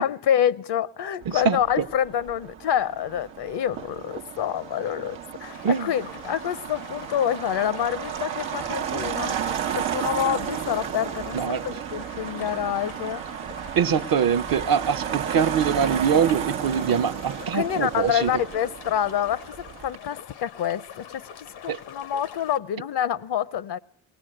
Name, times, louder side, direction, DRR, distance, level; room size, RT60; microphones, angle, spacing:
voice 1, 0.0-9.5 9.7-11.4 11.6-13.2 17.5-23.8, left 9 dB, 60° left, 0.7 m, -27 dB
Motor vehicle (road), 1.2-20.0, right 9 dB, 85° right, 0.9 m, -33 dB
voice 2, 1.3-1.9 5.6-5.9 11.3-11.6 13.8-18.4 21.7-21.8, right 7 dB, 50° right, 0.7 m, -23 dB
sound 1, 5.4-22.6, left 8 dB, 90° left, 1.2 m, -44 dB
19.0 x 19.0 x 7.8 m
supercardioid pair, 45°, 45 cm